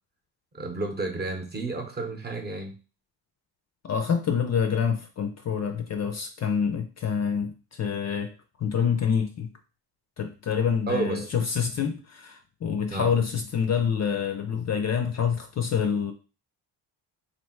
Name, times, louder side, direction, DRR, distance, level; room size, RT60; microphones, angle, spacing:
voice 1, 0.5-2.7 10.9-11.3 12.9-13.1, right 3 dB, 25° right, 4 dB, 0.8 m, -31 dB
voice 2, 3.8-8.3 8.6-9.5 10.2-16.1, left 7 dB, 40° left, 6 dB, 0.5 m, -27 dB
3.3 x 2.6 x 4.3 m, 0.33 s
cardioid pair, 125°, 42 cm